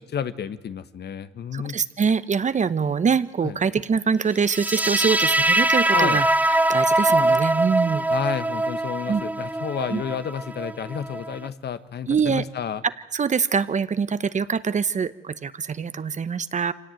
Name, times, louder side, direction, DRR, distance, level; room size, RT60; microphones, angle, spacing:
voice 1, 0.1-1.8 3.4-3.5 5.9-6.2 8.1-12.8, left 8 dB, 55° left, 12 dB, 1.2 m, -30 dB
voice 2, 1.5-8.0 9.1-9.2 9.9-10.0 12.1-12.4 13.1-16.7, right 6 dB, 40° right, 14 dB, 0.9 m, -24 dB
sound 1, 4.4-11.5, right 1 dB, 10° right, 0.9 m, -22 dB
25.5 x 17.5 x 9.1 m, 1.1 s
cardioid pair, 90°, 20 cm